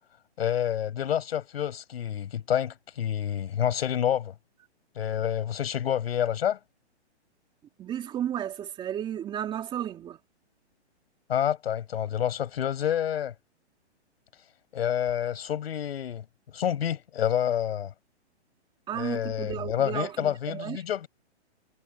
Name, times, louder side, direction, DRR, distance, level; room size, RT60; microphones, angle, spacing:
voice 1, 0.4-4.3 5.0-6.6 11.3-13.3 14.7-16.2 16.5-17.9 18.9-21.1, left 10 dB, 60° left, 7.7 m, -28 dB
voice 2, 7.8-10.2 18.9-20.8, right 10 dB, 15° right, 2.7 m, -33 dB
hypercardioid pair, 160°, 34 cm